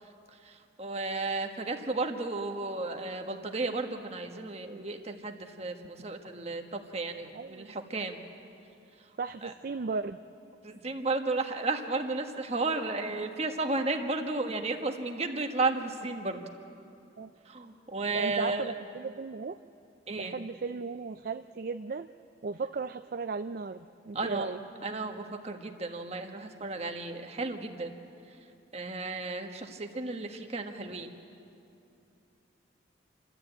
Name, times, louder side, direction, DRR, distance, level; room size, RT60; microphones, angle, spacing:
voice 1, 0.4-8.2 9.4-9.5 10.6-16.4 17.4-18.7 20.1-20.4 24.1-24.5 24.8-27.9 28.7-31.1, right 3 dB, 35° right, 4 dB, 1.4 m, -33 dB
voice 2, 7.3-7.7 9.2-10.2 17.2-17.3 18.1-19.6 20.2-22.1 22.4-24.6, right 4 dB, 50° right, 9 dB, 0.4 m, -36 dB
28.0 x 13.0 x 8.9 m, 2.7 s
head